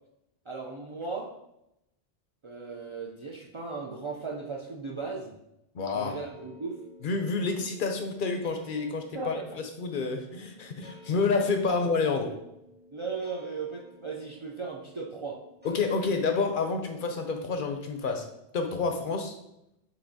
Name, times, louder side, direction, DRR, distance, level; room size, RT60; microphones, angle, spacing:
voice 1, 0.5-1.3 2.4-5.4 5.9-6.8 9.1-9.4 12.2-12.3 12.9-15.4, right 4 dB, 50° right, -2 dB, 0.3 m, -37 dB
voice 2, 5.7-6.2 7.0-12.3 15.6-18.3 18.5-19.4, left 4 dB, 60° left, 5 dB, 0.7 m, -29 dB
sound 1, 6.0-17.8, equal, 10° right, 0.7 m, -53 dB
7.0 x 2.7 x 2.6 m, 0.83 s
omnidirectional pair, 1.1 m